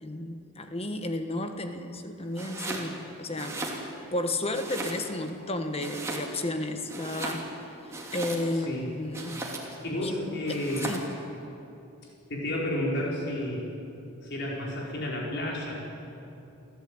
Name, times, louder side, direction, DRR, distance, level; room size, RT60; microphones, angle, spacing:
voice 1, 0.0-3.6 4.1-7.4 8.1-9.4 10.0-10.1 10.5-10.6 10.9-11.0, left 1 dB, 30° left, 7 dB, 1.4 m, -32 dB
Domestic sounds home sounds, 2.3-2.9 3.3-4.2 4.5-5.3 5.8-6.5 6.8-8.7 9.1-9.8 10.5-11.1, right 2 dB, 15° right, 2.9 m, -37 dB
voice 2, 8.5-8.9 9.8-10.9 12.3-13.6 14.2-15.7, left 1 dB, 50° left, -3 dB, 5.1 m, -31 dB
26.0 x 14.5 x 9.0 m, 2.8 s
head